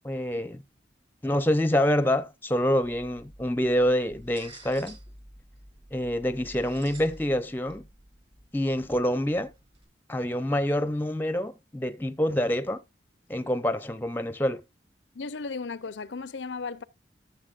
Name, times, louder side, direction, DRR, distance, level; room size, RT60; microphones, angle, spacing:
voice 1, 0.0-0.6 1.2-5.0 5.9-7.8 8.5-9.5 10.1-12.8 13.3-14.6, equal, 10° left, 0.7 m, -26 dB
sound 1, 2.7-9.9, right 2 dB, 30° right, 3.5 m, -50 dB
voice 2, 15.1-16.8, left 4 dB, 85° left, 0.6 m, -35 dB
14.0 x 7.2 x 2.5 m
head